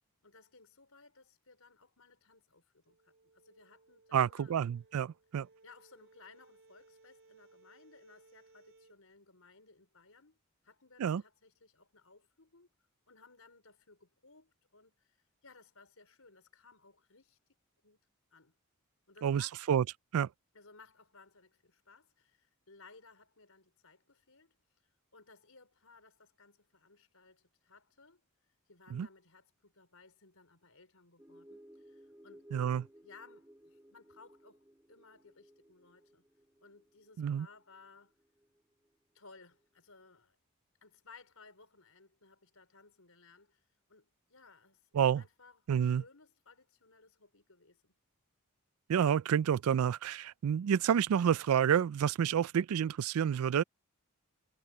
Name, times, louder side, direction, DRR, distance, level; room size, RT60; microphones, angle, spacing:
voice 1, 0.2-4.6 5.6-10.4 10.6-12.7 13.1-17.4 17.8-18.0 18.3-18.5 19.1-19.7 20.5-28.2 28.7-36.2 36.6-38.2 39.1-40.4 40.8-43.6 43.9-44.9 45.1-47.9, left 4 dB, 75° left, 4.9 m, -60 dB
sound 1, 2.8-9.0, right 3 dB, 55° right, 3.5 m, -64 dB
voice 2, 4.1-5.5 11.0-11.2 19.2-19.8 20.1-20.3 28.9-29.1 32.5-32.9 37.2-37.5 44.9-45.2 45.7-46.0 48.9-53.6, right 8 dB, 80° right, 0.3 m, -29 dB
sound 2, 31.2-38.9, equal, 10° right, 2.2 m, -59 dB
head